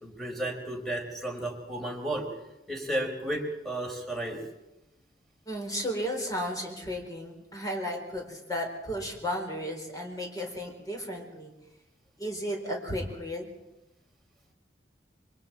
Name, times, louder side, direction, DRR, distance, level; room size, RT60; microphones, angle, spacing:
voice 1, 0.0-2.3 2.7-4.4, right 1 dB, ahead, 0 dB, 4.2 m, -33 dB
voice 2, 5.5-11.5 12.2-13.5, equal, 20° left, 1 dB, 4.2 m, -34 dB
26.0 x 23.5 x 4.5 m, 0.96 s
head